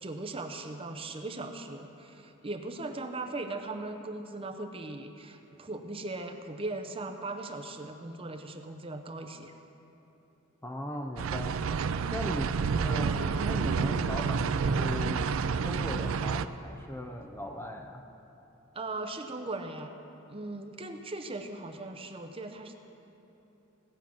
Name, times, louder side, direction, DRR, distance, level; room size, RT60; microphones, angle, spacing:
voice 1, 0.0-9.5 18.7-19.9 20.3-22.8, right 2 dB, 25° right, 6 dB, 0.6 m, -39 dB
voice 2, 10.6-11.6 12.1-12.6 12.8-15.3 15.6-18.0, left 1 dB, 10° left, 4 dB, 0.5 m, -38 dB
sound 1, 11.2-16.5, right 5 dB, 75° right, 0.4 m, -29 dB
17.5 x 5.8 x 7.4 m, 3.0 s
head